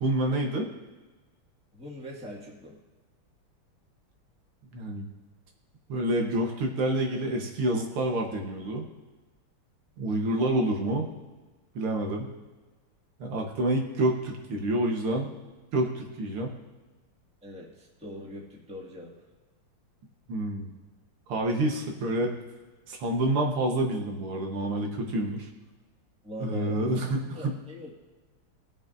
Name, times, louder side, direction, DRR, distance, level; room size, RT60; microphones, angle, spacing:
voice 1, 0.0-0.7 4.7-5.1 5.9-8.9 10.0-11.1 11.8-12.3 13.2-15.3 15.7-16.6 20.3-20.7 21.3-22.3 22.9-25.5 26.4-27.6, right 1 dB, 80° right, 2 dB, 2.1 m, -28 dB
voice 2, 1.7-2.8 17.4-19.1 26.2-26.9 27.2-27.9, equal, 5° right, -3 dB, 1.6 m, -41 dB
19.5 x 7.1 x 2.6 m, 1.3 s
omnidirectional pair, 2.4 m